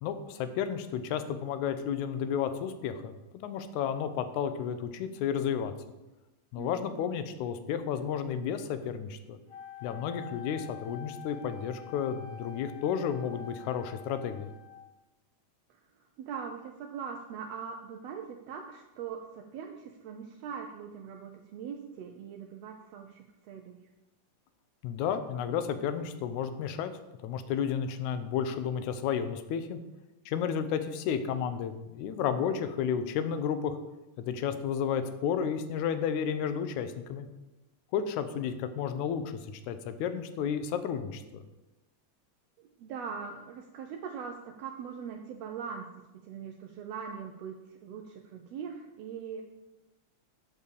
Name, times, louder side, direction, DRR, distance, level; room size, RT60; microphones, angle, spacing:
voice 1, 0.0-5.7 6.5-9.4 9.8-14.5 24.8-26.9 27.2-29.8 30.3-33.8 34.2-37.3 37.9-41.4, left 8 dB, 80° left, 10 dB, 2.0 m, -32 dB
voice 2, 6.6-7.0 16.2-23.8 42.6-45.9 46.2-49.4, right 6 dB, 80° right, 4 dB, 1.5 m, -41 dB
Wind instrument woodwind instrument, 9.5-15.0, left 8 dB, 10° left, 1.7 m, -47 dB
8.3 x 4.4 x 6.8 m, 1.0 s
omnidirectional pair, 3.5 m